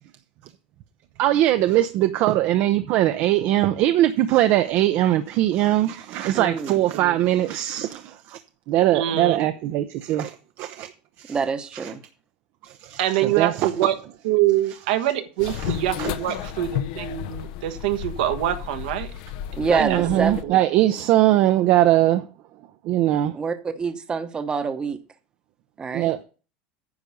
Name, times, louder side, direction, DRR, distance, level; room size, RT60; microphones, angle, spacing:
voice 1, 1.2-8.4 8.7-10.9 11.2-11.4 11.8-11.9 12.6-13.7 15.6-15.7 16.0-16.1 19.8-22.3 22.8-23.3 25.9-26.2, right 14 dB, 55° right, 0.6 m, -21 dB
voice 2, 6.3-6.8 11.3-12.0 19.6-20.4 23.3-25.0 25.8-26.1, right 5 dB, 20° right, 0.9 m, -26 dB
voice 3, 8.9-9.4 13.0-14.0 14.2-19.1 19.6-20.9, right 12 dB, 85° right, 1.4 m, -25 dB
sound 1, 15.4-20.4, left 10 dB, 75° left, 0.9 m, -32 dB
9.7 x 5.2 x 6.9 m
supercardioid pair, 140°, 4 cm